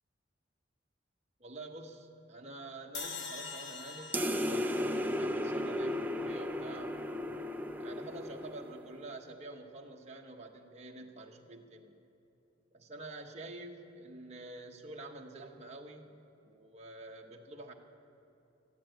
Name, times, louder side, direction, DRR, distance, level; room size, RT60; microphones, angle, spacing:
voice 1, 1.4-7.0 7.8-11.9 12.7-16.1 16.4-17.7, right 2 dB, 35° right, 1 dB, 1.0 m, -48 dB
sound 1, 2.9-6.2, left 4 dB, 65° left, 1.1 m, -45 dB
sound 2, 4.1-9.0, left 1 dB, 10° right, 0.4 m, -35 dB
14.0 x 9.9 x 7.8 m, 2.9 s
head